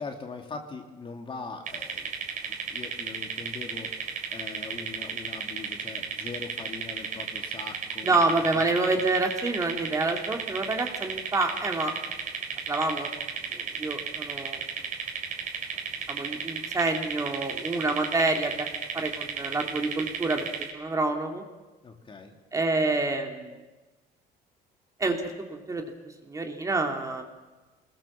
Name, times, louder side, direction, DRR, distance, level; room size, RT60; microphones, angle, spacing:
voice 1, 0.0-2.1 2.5-8.3 8.5-8.6 21.8-22.4, left 4 dB, 30° left, 4 dB, 2.8 m, -41 dB
sound 1, 1.7-20.7, right 6 dB, 50° right, 4.5 m, -34 dB
voice 2, 8.0-11.9 12.7-13.1 13.5-14.6 16.1-18.7 18.9-20.4 20.7-21.4 22.5-23.6 25.0-25.8 26.3-27.3, right 3 dB, 20° right, 3 dB, 2.5 m, -27 dB
24.0 x 21.0 x 7.3 m, 1.2 s
cardioid pair, 120°, 17 cm